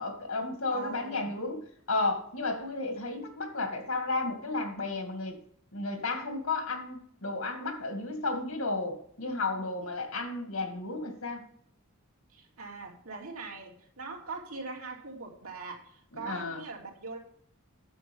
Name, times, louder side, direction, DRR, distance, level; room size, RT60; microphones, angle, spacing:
voice 1, 0.0-1.6 1.9-5.4 5.7-11.4 16.1-16.6, left 3 dB, 80° left, 5 dB, 2.2 m, -33 dB
voice 2, 0.7-1.3 12.3-17.2, right 4 dB, 85° right, -2 dB, 2.8 m, -41 dB
10.0 x 7.1 x 5.5 m, 0.65 s
head